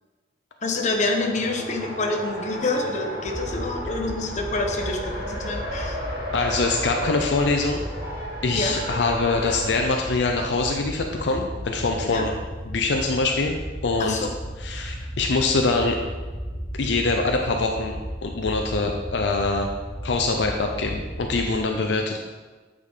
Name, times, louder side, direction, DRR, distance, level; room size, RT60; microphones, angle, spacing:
voice 1, 0.6-6.0 8.5-8.7 12.1-12.2 14.0-14.3, left 2 dB, 40° left, 2 dB, 0.9 m, -27 dB
Race car auto racing, 0.6-9.8, equal, 60° right, 1.8 m, -34 dB
sound 1, 3.3-21.6, equal, ahead, 0.7 m, -35 dB
voice 2, 6.3-7.8 8.4-12.3 12.6-13.6 13.8-14.2 14.6-16.0 16.8-19.7 20.0-22.2, left 3 dB, 70° left, 2 dB, 0.5 m, -24 dB
8.6 x 4.9 x 3.6 m, 1.3 s
head